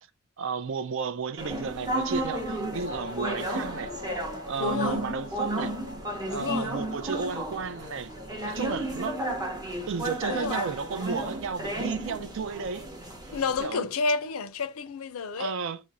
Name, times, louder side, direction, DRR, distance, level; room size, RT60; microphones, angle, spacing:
voice 1, 0.4-3.9 4.5-5.7 6.3-8.1 8.4-9.2 9.9-12.9 13.6-13.8 15.4-15.8, right 5 dB, 60° right, 0.4 m, -33 dB
sound 1, 1.4-13.7, right 1 dB, 15° right, 0.7 m, -33 dB
sound 2, 2.7-8.9, left 2 dB, 40° right, 1.0 m, -44 dB
voice 2, 4.6-5.0 6.3-6.8 10.3-10.7 12.1-12.2 13.3-15.6, left 4 dB, 75° left, 0.4 m, -30 dB
3.7 x 2.0 x 4.0 m
head